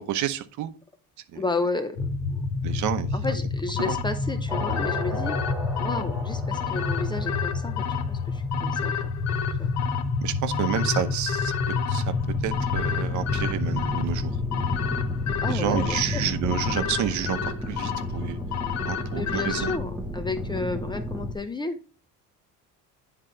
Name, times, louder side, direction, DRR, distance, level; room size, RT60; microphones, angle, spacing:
voice 1, 0.1-0.7 1.3-1.4 2.6-3.1 3.9-4.0 10.2-11.5 11.9-12.0 12.4-14.3 15.4-17.4 17.7-18.4 18.9-19.7, right 11 dB, 60° right, 10 dB, 0.9 m, -29 dB
voice 2, 1.3-2.4 3.1-5.4 5.8-9.1 9.6-9.7 15.4-16.2 19.1-21.8, left 3 dB, 15° left, 8 dB, 0.5 m, -32 dB
sound 1, 2.0-16.7, left 3 dB, 80° left, 1.4 m, -29 dB
sound 2, 3.8-19.8, left 9 dB, 55° left, 0.9 m, -33 dB
sound 3, 4.5-8.4 11.8-21.3, left 1 dB, 5° right, 1.3 m, -34 dB
9.9 x 3.8 x 4.4 m, 0.36 s
cardioid pair, 150°, 33 cm